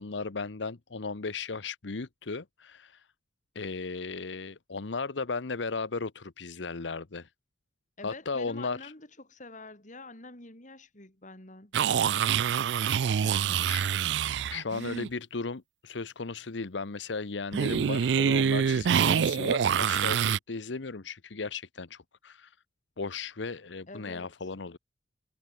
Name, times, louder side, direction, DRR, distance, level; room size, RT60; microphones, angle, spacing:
voice 1, 0.0-3.0 3.5-7.3 8.0-8.9 13.2-14.2 14.5-22.5 23.0-24.8, left 4 dB, 80° left, 0.9 m, -36 dB
voice 2, 8.0-11.7 23.9-24.5, left 2 dB, 45° left, 4.8 m, -47 dB
sound 1, 11.7-15.1 17.5-20.4, right 8 dB, 70° right, 0.4 m, -26 dB
head